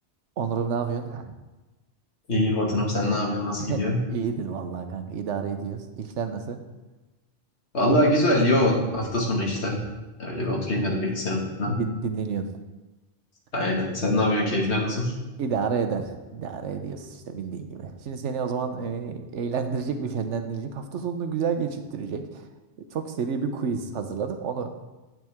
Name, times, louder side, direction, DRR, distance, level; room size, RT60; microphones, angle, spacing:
voice 1, 0.4-1.3 3.6-3.8 4.1-6.6 10.4-10.5 10.8-11.0 11.6-12.5 15.4-22.2 22.9-24.7, right 6 dB, 90° right, 7 dB, 1.1 m, -30 dB
voice 2, 2.3-4.0 7.7-9.8 10.2-11.8 13.5-15.1, left 1 dB, 70° left, -2 dB, 2.3 m, -24 dB
9.2 x 8.7 x 3.6 m, 1.1 s
omnidirectional pair, 1.2 m